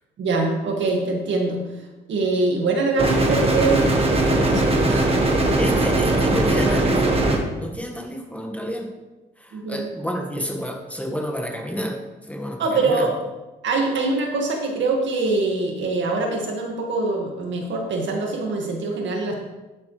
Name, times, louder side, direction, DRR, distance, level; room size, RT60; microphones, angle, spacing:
voice 1, 0.2-1.6 2.1-5.2 9.5-9.9 12.6-13.1 13.6-19.3, right 3 dB, 70° right, 1 dB, 2.0 m, -24 dB
sound 1, 3.0-7.4, right 2 dB, 30° right, 1.7 m, -19 dB
voice 2, 5.6-7.2 7.5-8.9 9.4-12.0 12.3-13.1, equal, 5° left, 1 dB, 1.7 m, -30 dB
11.5 x 7.6 x 3.3 m, 1.1 s
cardioid pair, 90°, 20 cm